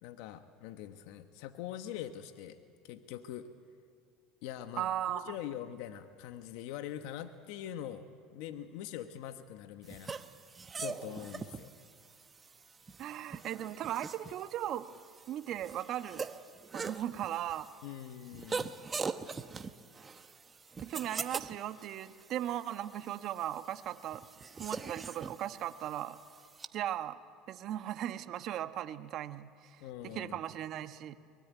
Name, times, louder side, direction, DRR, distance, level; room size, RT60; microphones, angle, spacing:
voice 1, 0.0-2.6 2.8-3.5 4.4-8.1 8.3-10.1 10.8-11.7 17.8-18.7 29.8-30.4, left 11 dB, 75° left, 8 dB, 1.1 m, -43 dB
voice 2, 4.8-5.4 13.0-14.9 15.3-16.3 16.7-17.7 20.8-24.2 24.6-26.2 26.7-27.2 27.5-31.2, right 11 dB, 50° right, 10 dB, 1.1 m, -37 dB
sound 1, 9.9-26.7, right 5 dB, 25° right, 1.0 m, -43 dB
23.5 x 21.0 x 9.4 m, 2.3 s
supercardioid pair, 105°, 0 cm